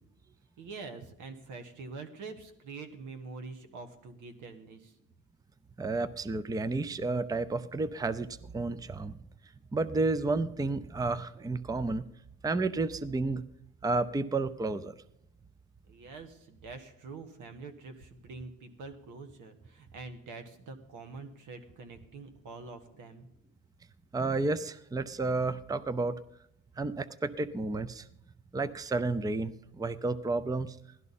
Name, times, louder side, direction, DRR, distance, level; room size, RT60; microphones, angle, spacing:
voice 1, 0.6-5.0 15.9-23.3, right 4 dB, 85° right, 7 dB, 1.5 m, -45 dB
voice 2, 5.8-9.2 9.7-12.0 12.4-13.4 13.8-14.9 24.1-26.2 26.8-28.1 28.5-30.8, right 3 dB, 10° right, 14 dB, 0.5 m, -31 dB
16.5 x 12.5 x 4.2 m, 0.77 s
cardioid pair, 90°, 30 cm